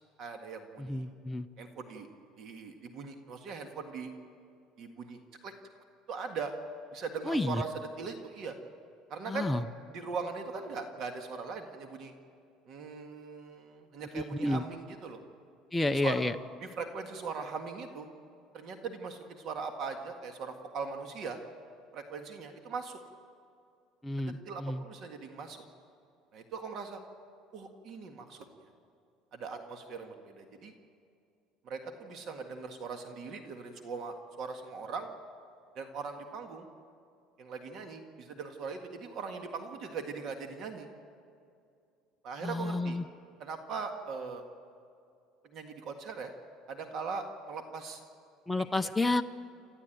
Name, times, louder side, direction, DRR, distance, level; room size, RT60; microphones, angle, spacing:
voice 1, 0.2-1.1 1.6-2.1 2.4-4.1 4.8-5.5 6.1-6.5 6.9-8.6 9.1-9.5 9.9-12.1 12.7-15.2 15.9-16.2 16.6-18.1 18.5-21.4 21.9-23.0 24.2-25.6 26.3-27.0 27.5-28.4 29.3-30.7 31.6-35.1 35.8-36.7 37.4-40.9 42.2-43.0 43.4-44.4 45.5-46.3 46.7-48.0 48.8-48.9, right 5 dB, 45° right, 5 dB, 1.8 m, -40 dB
voice 2, 0.8-1.5 7.2-7.6 9.3-9.6 14.1-14.6 15.7-16.4 24.0-24.8 42.4-43.1 48.5-49.2, left 2 dB, 5° left, 7 dB, 0.5 m, -30 dB
29.0 x 14.0 x 9.2 m, 2.4 s
cardioid pair, 150°, 0 cm